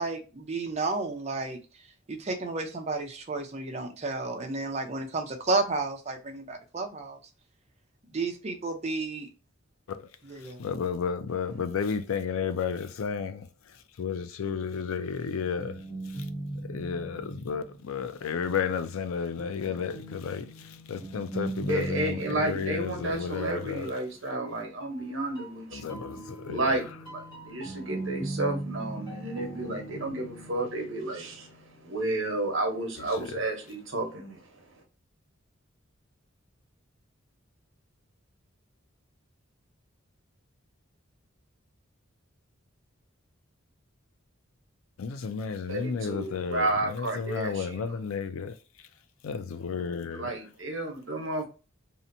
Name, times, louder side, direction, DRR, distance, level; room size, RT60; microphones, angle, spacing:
voice 1, 0.0-1.6 2.1-7.2 8.1-9.3 10.3-10.6, right 3 dB, 30° right, 0.5 m, -32 dB
voice 2, 10.4-13.5 14.0-15.8 16.1-16.3 16.6-23.9 25.7-26.8 33.0-33.2 45.0-48.6 49.2-50.3, left 6 dB, 85° left, 0.4 m, -32 dB
sound 1, 15.0-18.1 19.4-24.0 24.8-32.5, right 2 dB, 20° left, 0.8 m, -40 dB
voice 3, 21.7-26.0 26.5-34.8 45.7-48.0 50.1-51.5, right 2 dB, 70° right, 0.9 m, -32 dB
2.8 x 2.1 x 2.5 m
head